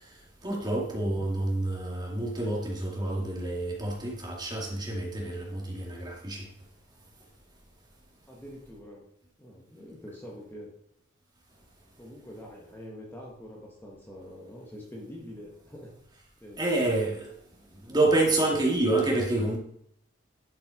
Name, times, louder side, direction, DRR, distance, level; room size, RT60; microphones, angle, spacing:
voice 1, 0.4-6.5 16.6-17.3 17.8-19.6, right 2 dB, 20° right, 2.3 m, -28 dB
voice 2, 8.3-9.0 9.4-10.7 12.0-15.9 16.4-16.8, equal, 10° left, 1.4 m, -45 dB
10.5 x 5.9 x 5.1 m
head